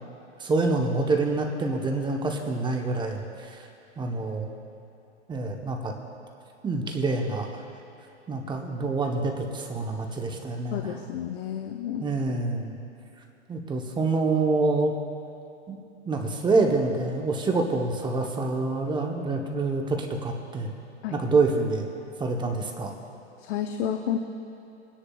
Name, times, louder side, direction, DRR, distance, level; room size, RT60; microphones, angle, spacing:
voice 1, 0.4-3.7 4.0-4.5 5.3-5.9 6.6-7.6 8.3-11.0 12.0-12.7 13.5-14.9 15.7-15.8 16.0-20.7 21.1-21.9 22.2-23.0, right 3 dB, 15° right, 2 dB, 0.9 m, -26 dB
voice 2, 10.7-12.1 21.0-21.2 23.4-24.2, left 9 dB, 60° left, 5 dB, 0.8 m, -30 dB
23.0 x 10.0 x 2.3 m, 2.8 s
hypercardioid pair, 125°, 35 cm